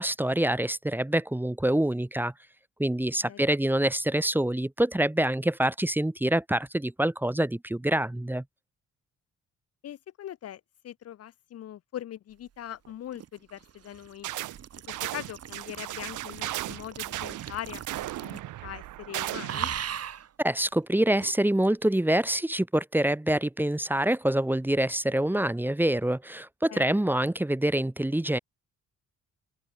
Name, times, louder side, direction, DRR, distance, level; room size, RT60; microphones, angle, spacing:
voice 1, 0.0-2.3 2.8-8.4 20.4-28.4, right 1 dB, 5° right, 1.0 m, -26 dB
voice 2, 9.8-14.3 14.9-17.8 18.2-19.7 26.7-27.0, left 11 dB, 55° left, 0.7 m, -41 dB
male drinking slurping aaaaaaaaaaah small belch, 12.8-18.6 18.8-19.1 19.5-20.3 21.2-21.3, right 9 dB, 55° right, 2.2 m, -39 dB
sound 1, 14.2-14.6 14.9-19.7, right 15 dB, 85° right, 1.7 m, -36 dB
open air
cardioid pair, 90°, 30 cm